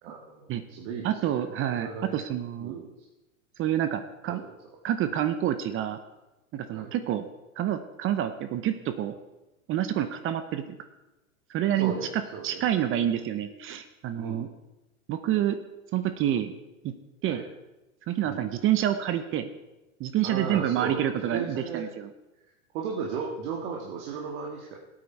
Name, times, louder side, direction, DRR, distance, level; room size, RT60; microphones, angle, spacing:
voice 1, 0.0-2.2 2.6-2.9 4.3-4.5 5.1-5.2 6.7-6.9 11.8-12.6 14.2-14.5 17.3-17.4 18.2-18.5 20.2-21.9 22.7-24.8, right 5 dB, 55° right, -1 dB, 2.1 m, -36 dB
voice 2, 1.0-2.7 3.6-4.4 4.8-6.0 6.5-7.3 7.6-9.1 9.7-10.8 11.5-14.5 15.1-15.6 15.9-16.5 16.8-16.9 17.2-17.5 18.1-19.5 20.0-22.1, right 11 dB, 30° right, 10 dB, 0.9 m, -28 dB
17.0 x 8.9 x 4.6 m, 1.0 s
hypercardioid pair, 110°, 42 cm